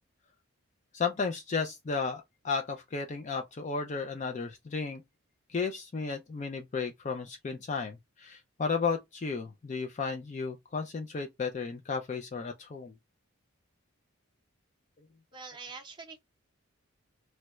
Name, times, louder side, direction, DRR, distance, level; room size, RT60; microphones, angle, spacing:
voice 1, 0.9-5.0 5.5-12.9, left 5 dB, 30° left, 0.3 m, -34 dB
voice 2, 15.3-16.2, right 4 dB, 20° right, 0.6 m, -44 dB
3.1 x 2.2 x 2.9 m
head